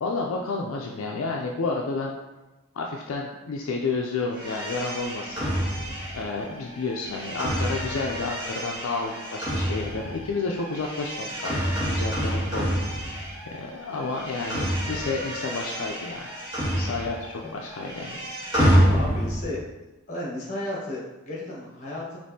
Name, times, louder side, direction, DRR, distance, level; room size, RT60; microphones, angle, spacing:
voice 1, 0.0-2.2 2.7-5.5 6.1-11.6 11.9-13.1 13.4-16.3 16.7-18.2, left 3 dB, 70° left, 0 dB, 0.4 m, -31 dB
sound 1, 4.3-13.6 13.9-17.4 17.6-19.5, equal, 20° right, 1.3 m, -27 dB
voice 2, 18.9-19.7 20.1-22.2, left 1 dB, 35° left, -4 dB, 1.2 m, -33 dB
5.2 x 3.0 x 2.7 m, 1.1 s
head